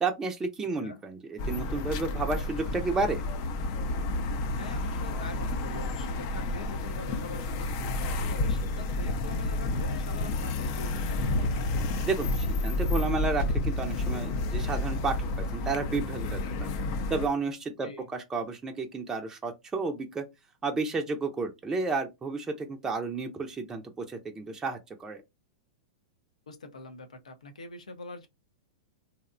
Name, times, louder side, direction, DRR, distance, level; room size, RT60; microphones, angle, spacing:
voice 1, 0.0-3.2 12.1-16.7 17.1-20.2 20.6-25.2, right 3 dB, 15° right, 0.4 m, -32 dB
sound 1, 1.4-17.3, left 2 dB, 50° left, 0.4 m, -30 dB
voice 2, 4.5-11.6 17.8-18.1 26.5-28.3, left 3 dB, 90° left, 0.6 m, -44 dB
2.7 x 2.0 x 2.4 m
hypercardioid pair, 110°, 4 cm